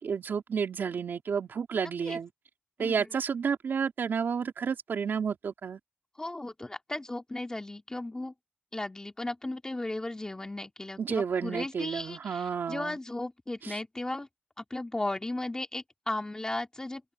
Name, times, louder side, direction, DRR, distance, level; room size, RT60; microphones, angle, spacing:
voice 1, 0.0-2.3 2.8-5.8 11.0-13.0 13.6-13.8, right 6 dB, 70° right, 3.8 m, -31 dB
voice 2, 6.2-8.3 8.7-14.3 14.6-17.1, left 2 dB, 20° left, 2.7 m, -36 dB
open air
cardioid pair, 85°, 4 cm